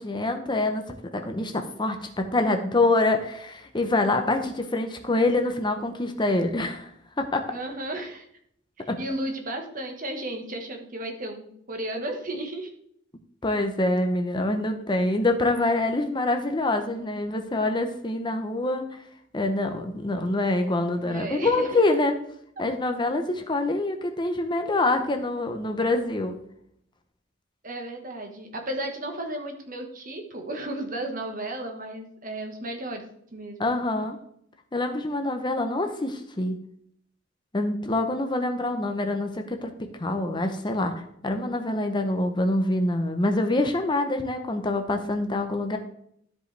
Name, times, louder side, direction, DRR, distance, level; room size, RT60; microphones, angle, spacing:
voice 1, 0.0-6.9 7.2-7.4 8.9-9.0 13.4-18.8 19.3-22.2 22.6-26.4 33.6-34.2 34.7-36.6 37.5-40.9 41.2-45.8, left 2 dB, 25° left, 6 dB, 0.8 m, -25 dB
voice 2, 7.5-8.3 9.0-12.7 21.0-22.0 27.6-33.0 33.3-33.7, right 1 dB, 45° right, 4 dB, 1.4 m, -34 dB
13.0 x 5.1 x 3.3 m, 0.70 s
head